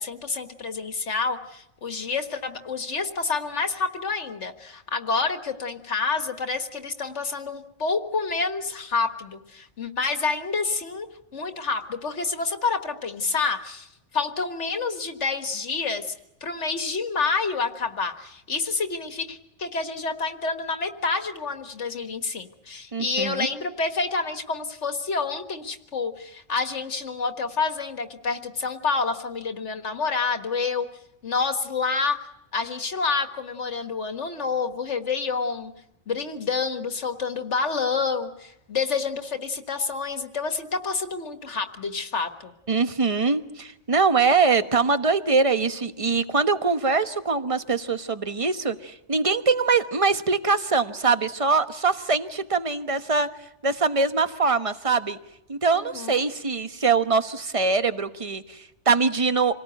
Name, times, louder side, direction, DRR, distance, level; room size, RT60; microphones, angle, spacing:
voice 1, 0.0-11.1 11.3-16.1 16.4-30.9 31.2-32.2 32.5-35.7 36.1-42.5 55.7-56.3, left 4 dB, 75° left, 7 dB, 1.9 m, -28 dB
voice 2, 22.9-23.5 42.7-53.3 53.6-55.2 55.5-59.5, right 4 dB, 30° right, 10 dB, 1.2 m, -23 dB
27.5 x 18.5 x 9.1 m, 0.87 s
omnidirectional pair, 1.2 m